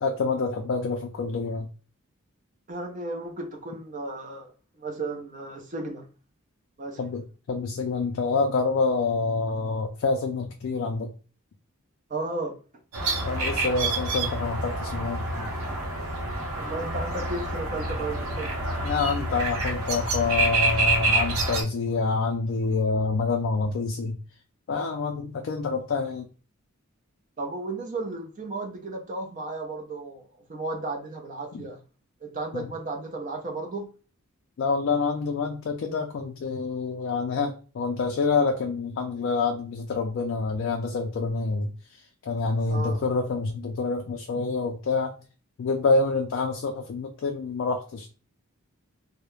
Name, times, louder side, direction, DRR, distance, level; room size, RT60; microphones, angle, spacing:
voice 1, 0.0-1.7 7.0-7.2 7.5-11.1 13.3-15.5 18.8-24.2 24.7-26.3 31.5-31.6 32.5-32.7 34.6-45.1 45.6-48.1, left 4 dB, 55° left, 0.3 m, -27 dB
voice 2, 2.7-6.1 6.8-7.0 12.1-12.6 16.5-18.6 27.4-31.8 32.2-33.9 42.7-43.0, right 2 dB, 35° right, 0.5 m, -34 dB
sound 1, 12.9-21.6, right 2 dB, 75° right, 0.7 m, -27 dB
2.3 x 2.0 x 3.0 m
head